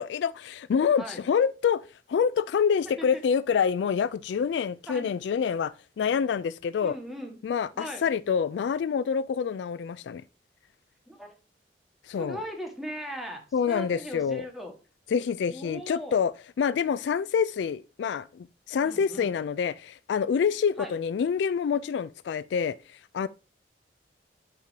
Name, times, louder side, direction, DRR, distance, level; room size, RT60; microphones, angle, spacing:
voice 1, 0.0-1.8 2.1-7.0 7.4-10.2 12.1-12.4 13.5-14.5 15.1-16.3 16.6-22.8 23.1-23.3, left 7 dB, 70° left, 0.3 m, -27 dB
voice 2, 6.8-7.4 7.7-8.1 11.1-11.4 12.2-14.7 15.4-16.2 18.8-19.3 20.8-20.9, equal, ahead, 1.5 m, -39 dB
7.7 x 5.2 x 2.8 m
head